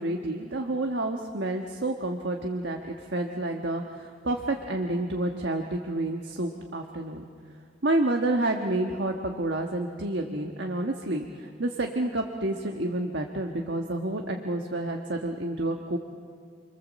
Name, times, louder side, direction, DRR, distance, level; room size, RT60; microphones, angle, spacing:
voice 1, 0.0-7.3 7.8-16.0, right 2 dB, 75° right, 2 dB, 1.4 m, -29 dB
29.5 x 23.0 x 7.4 m, 2.2 s
head